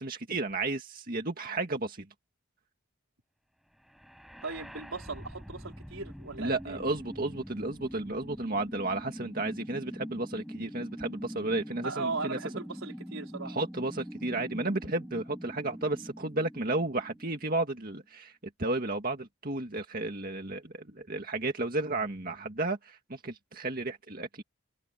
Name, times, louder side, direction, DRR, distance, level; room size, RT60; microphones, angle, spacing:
voice 1, 0.0-2.1 6.4-12.4 13.4-24.4, right 2 dB, 45° right, 2.0 m, -33 dB
sound 1, 3.9-17.9, equal, ahead, 6.2 m, -44 dB
voice 2, 4.4-6.8 11.8-13.6, right 3 dB, 75° right, 4.1 m, -38 dB
head